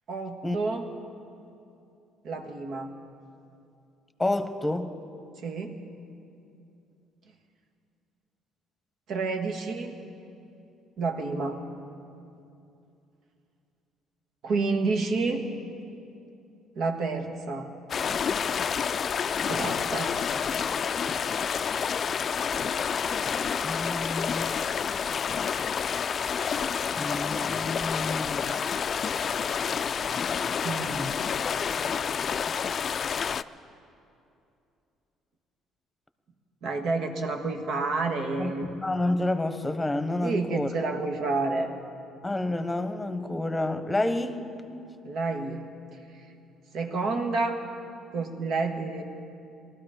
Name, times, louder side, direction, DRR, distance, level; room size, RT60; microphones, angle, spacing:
voice 1, 0.1-0.8 2.2-2.9 5.4-5.7 9.1-10.0 11.0-11.6 14.4-15.5 16.7-17.7 19.1-20.1 30.6-31.2 36.6-38.7 40.2-41.7 45.0-45.6 46.7-47.6 48.1-49.0, right 3 dB, 65° right, 4 dB, 1.5 m, -29 dB
voice 2, 4.2-5.0 23.6-24.5 27.0-28.5 30.8-31.1 38.4-40.7 42.2-44.4, left 2 dB, 15° left, 9 dB, 1.1 m, -29 dB
sound 1, 17.9-33.4, left 7 dB, 50° left, 0.4 m, -29 dB
19.0 x 13.0 x 5.1 m, 2.7 s
supercardioid pair, 70°, 0 cm